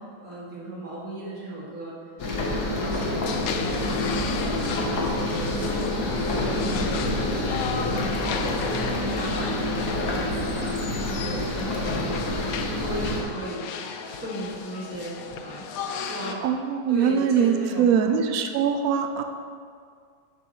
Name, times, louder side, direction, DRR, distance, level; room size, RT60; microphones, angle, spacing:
voice 1, 0.0-2.0 2.3-13.6 14.2-16.5 16.9-18.1, right 1 dB, 45° right, -8 dB, 2.7 m, -37 dB
sound 1, 2.2-13.2, left 1 dB, 55° left, 1.6 m, -27 dB
sound 2, 3.3-16.3, left 6 dB, 75° left, 0.8 m, -35 dB
voice 2, 16.4-19.2, right 7 dB, 85° right, 6 dB, 0.7 m, -22 dB
10.5 x 7.0 x 3.1 m, 2.1 s
omnidirectional pair, 2.1 m